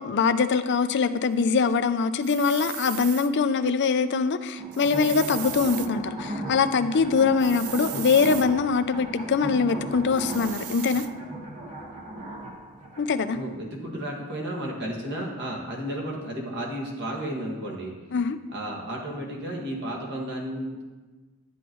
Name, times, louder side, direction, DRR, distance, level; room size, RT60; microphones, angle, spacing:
voice 1, 0.0-11.1 13.0-13.4 18.1-18.4, left 5 dB, 50° left, 11 dB, 0.4 m, -23 dB
sound 1, 2.2-3.3 4.7-5.9 7.4-8.5 10.1-11.1, right 13 dB, 75° right, 0.4 m, -37 dB
sound 2, 4.6-13.4, right 1 dB, 30° right, 1.4 m, -37 dB
voice 2, 13.3-17.9 18.5-20.8, right 1 dB, 50° right, -1 dB, 1.8 m, -33 dB
11.0 x 8.0 x 3.1 m, 1.3 s
head